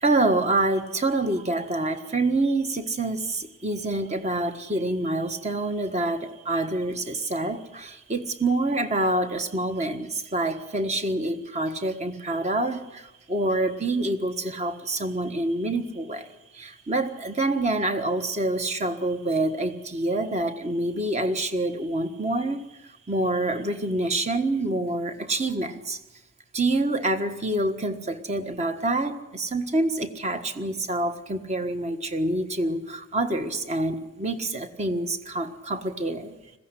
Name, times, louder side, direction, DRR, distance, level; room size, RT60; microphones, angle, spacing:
voice 1, 0.0-12.8 13.3-16.2 16.6-22.6 23.1-26.0 26.5-36.3, right 2 dB, 35° right, 8 dB, 1.5 m, -26 dB
21.0 x 15.5 x 9.9 m, 0.99 s
head